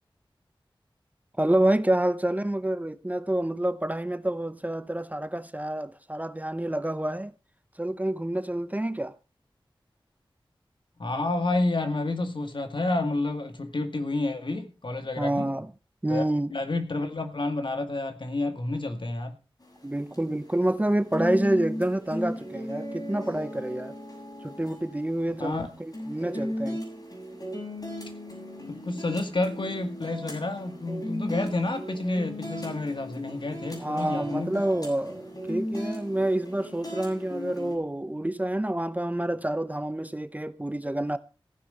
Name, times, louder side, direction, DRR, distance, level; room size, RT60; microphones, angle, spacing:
voice 1, 1.4-7.3 7.8-9.1 15.2-15.7 16.0-16.6 19.8-23.9 24.4-26.8 33.8-41.2, right 1 dB, 15° right, 0.8 m, -28 dB
voice 2, 11.0-15.5 16.1-16.2 16.5-19.3 25.4-25.7 28.7-34.5, left 2 dB, 65° left, 2.1 m, -29 dB
sound 1, 19.6-37.8, equal, 45° left, 7.2 m, -37 dB
15.0 x 9.8 x 5.2 m
wide cardioid pair, 60°, 9 cm